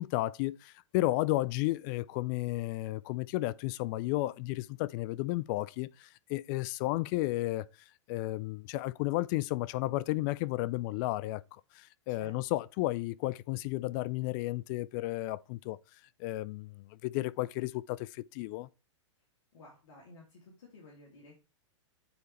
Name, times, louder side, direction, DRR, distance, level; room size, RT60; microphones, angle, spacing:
voice 1, 0.0-7.7 8.1-15.8 16.2-18.7, left 18 dB, 40° left, 0.4 m, -33 dB
voice 2, 19.5-21.4, left 2 dB, 70° left, 2.6 m, -54 dB
9.4 x 4.0 x 3.2 m
hypercardioid pair, 125°, 16 cm